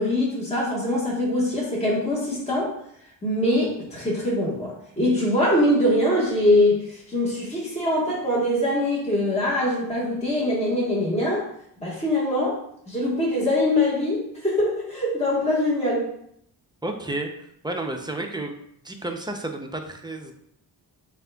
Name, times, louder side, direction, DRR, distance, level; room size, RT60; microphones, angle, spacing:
voice 1, 0.0-2.8 3.2-11.5 11.8-12.6 12.9-16.1, left 1 dB, 15° left, -6 dB, 1.3 m, -23 dB
voice 2, 16.8-18.5 18.8-20.3, right 2 dB, 10° right, 3 dB, 0.5 m, -31 dB
7.4 x 2.5 x 2.3 m, 0.71 s
cardioid pair, 95°, 41 cm